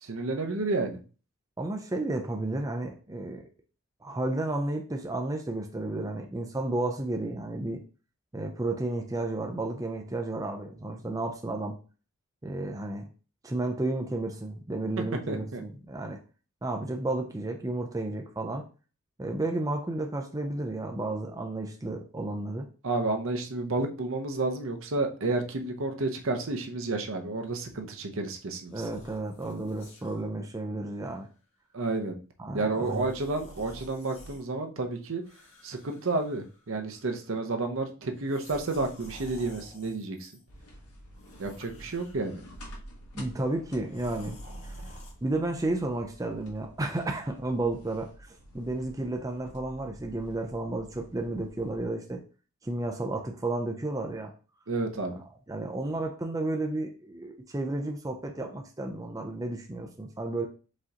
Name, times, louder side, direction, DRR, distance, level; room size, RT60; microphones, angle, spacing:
voice 1, 0.0-1.0 15.0-15.6 22.8-28.7 31.7-32.2 32.5-35.2 35.6-40.3 41.4-42.4 54.7-55.2, right 3 dB, 60° right, 4 dB, 0.7 m, -31 dB
voice 2, 1.6-3.4 4.0-7.8 8.3-11.8 12.4-13.1 13.4-16.2 16.6-18.6 19.2-22.7 28.7-31.3 32.4-33.1 43.1-44.8 45.2-48.1 48.5-52.2 52.6-54.3 55.5-60.5, right 2 dB, 15° right, 2 dB, 0.4 m, -32 dB
sound 1, 28.7-30.2 30.9-31.1 32.7-34.5 35.2-36.7 36.9-37.4 38.2-40.4 41.1-42.5 43.9-45.1, equal, 65° left, 1.9 m, -49 dB
sound 2, 40.5-51.8, equal, 85° left, 1.4 m, -50 dB
4.9 x 3.8 x 2.8 m, 0.36 s
head